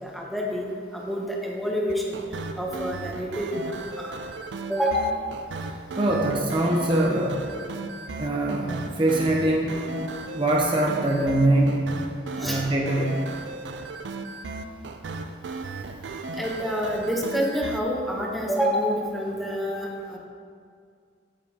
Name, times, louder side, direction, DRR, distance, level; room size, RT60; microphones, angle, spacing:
voice 1, 0.0-2.2 2.6-4.1 4.7-5.2 12.4-12.6 16.4-20.2, equal, ahead, -2 dB, 0.8 m, -28 dB
sound 1, 1.9-17.8, right 3 dB, 75° right, 0.4 m, -36 dB
voice 2, 5.9-7.4 8.2-9.8 10.3-11.8 12.4-13.2, right 1 dB, 30° right, -2 dB, 0.6 m, -23 dB
8.3 x 7.4 x 2.9 m, 2.2 s
head